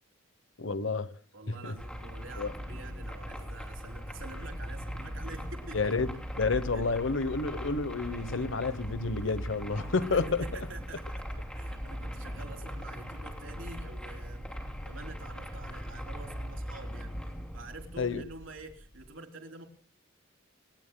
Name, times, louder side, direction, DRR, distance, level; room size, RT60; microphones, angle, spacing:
voice 1, 0.6-1.1 1.5-1.7 2.4-2.5 5.7-10.5 18.0-18.2, left 4 dB, 65° left, 1.1 m, -30 dB
voice 2, 1.3-5.9 6.7-6.9 10.0-11.3 11.5-14.5 14.9-17.2 17.5-19.7, right 2 dB, 70° right, 3.6 m, -47 dB
sound 1, 1.8-19.1, equal, 5° left, 3.1 m, -40 dB
29.5 x 18.0 x 2.3 m
head